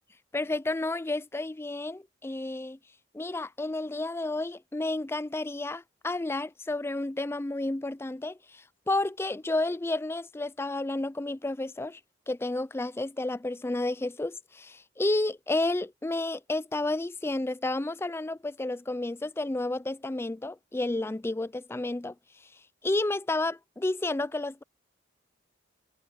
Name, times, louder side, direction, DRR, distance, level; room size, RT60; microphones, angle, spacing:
voice 1, 0.3-2.8 3.1-12.0 12.3-24.6, left 2 dB, 10° left, 0.4 m, -31 dB
head